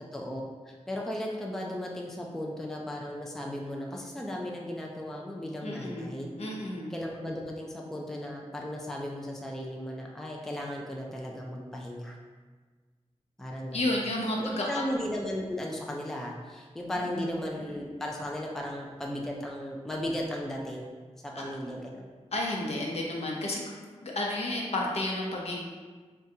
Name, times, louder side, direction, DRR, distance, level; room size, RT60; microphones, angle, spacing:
voice 1, 0.0-6.3 6.9-12.2 13.4-13.9 14.4-20.9 21.2-22.1, left 1 dB, 5° left, -1 dB, 0.3 m, -36 dB
voice 2, 5.6-6.9 13.7-14.8 17.1-17.3 21.4-21.5 22.3-23.6 24.0-25.6, left 1 dB, 65° left, -2 dB, 0.7 m, -31 dB
4.9 x 2.3 x 2.7 m, 1.4 s
wide cardioid pair, 145°, 12 cm